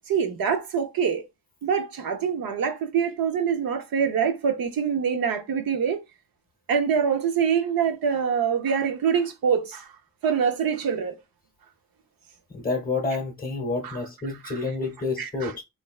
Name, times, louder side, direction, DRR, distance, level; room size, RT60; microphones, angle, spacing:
voice 1, 0.1-1.2 1.6-6.0 6.7-9.9 10.2-11.2 13.8-14.0 14.4-14.6 15.2-15.5, right 7 dB, 85° right, 0.6 m, -25 dB
voice 2, 12.5-15.6, left 3 dB, 25° left, 0.7 m, -29 dB
3.2 x 2.5 x 2.3 m
wide cardioid pair, 180°, 34 cm